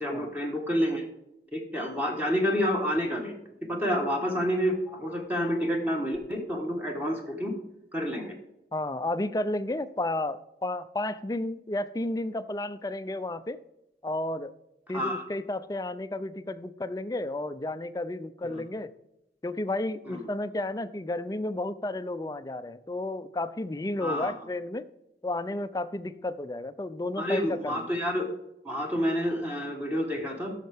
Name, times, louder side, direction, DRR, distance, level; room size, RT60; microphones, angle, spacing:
voice 1, 0.0-1.0 1.5-3.4 3.7-7.6 7.9-8.4 14.9-15.2 18.5-18.6 20.1-20.2 24.0-24.3 27.2-28.2 28.6-30.5, equal, 10° right, 0 dB, 1.2 m, -29 dB
voice 2, 8.7-13.6 14.0-14.5 14.9-18.9 19.4-24.8 25.2-27.8, left 2 dB, 20° left, 13 dB, 0.4 m, -32 dB
13.5 x 6.5 x 3.5 m, 0.90 s
head